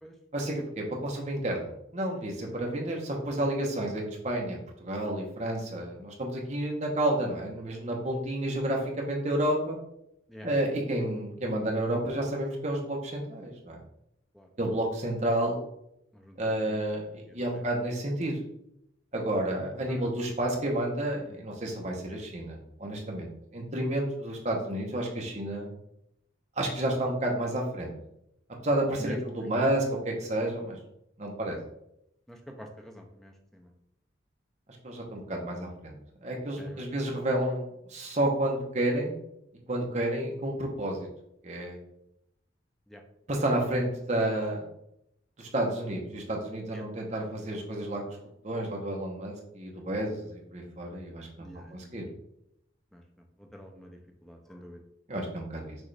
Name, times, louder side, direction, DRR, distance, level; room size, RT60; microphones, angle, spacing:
voice 1, 0.3-9.8 10.4-13.8 14.6-15.6 16.4-18.4 19.1-25.7 26.6-27.9 28.6-30.8 31.2-31.6 34.8-39.2 39.7-41.1 41.4-41.8 43.3-44.6 45.4-48.0 48.4-51.4 51.7-52.1 55.1-55.8, right 1 dB, 35° right, -1 dB, 0.9 m, -30 dB
voice 2, 16.1-16.8 17.4-17.6 19.7-20.1 21.3-21.4 29.0-29.2 32.3-33.7 36.6-36.9 42.9-43.0 46.7-46.8 51.4-52.0 52.9-54.8, equal, ahead, 3 dB, 0.5 m, -47 dB
6.2 x 2.4 x 3.2 m, 0.80 s
head